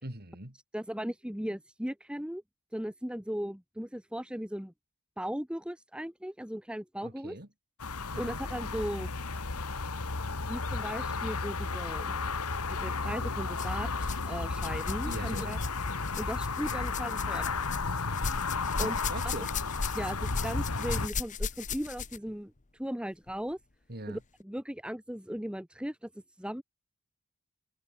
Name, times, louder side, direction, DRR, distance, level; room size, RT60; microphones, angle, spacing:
voice 1, 0.0-0.6 7.0-7.5 8.1-8.4 15.0-15.6 18.8-19.5 23.9-24.2, right 1 dB, 45° right, 4.1 m, -41 dB
voice 2, 0.7-2.4 2.7-4.7 5.2-7.4 8.2-9.1 10.5-12.2 12.7-15.6 16.1-17.5 18.8-19.0 19.2-19.3 19.9-23.6 24.1-26.1 26.4-26.6, equal, 5° right, 1.3 m, -37 dB
sound 1, 7.8-21.1, left 4 dB, 85° left, 1.8 m, -33 dB
sound 2, 12.6-12.8 13.5-14.3 14.5-22.3 23.3-23.4 24.2-24.3, left 5 dB, 35° left, 0.9 m, -38 dB
head